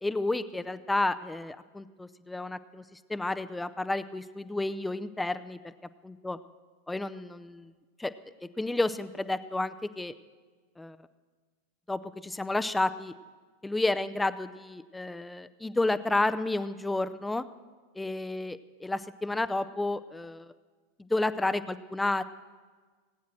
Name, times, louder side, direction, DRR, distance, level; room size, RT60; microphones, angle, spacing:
voice 1, 0.0-5.7 6.0-6.4 6.9-7.7 8.0-8.1 8.6-10.1 10.8-11.0 11.9-13.1 13.6-17.4 17.9-20.5 21.1-22.2, left 2 dB, 5° left, 13 dB, 0.5 m, -31 dB
19.5 x 9.4 x 7.6 m, 1.4 s
figure-of-eight pair, 90°, 0 cm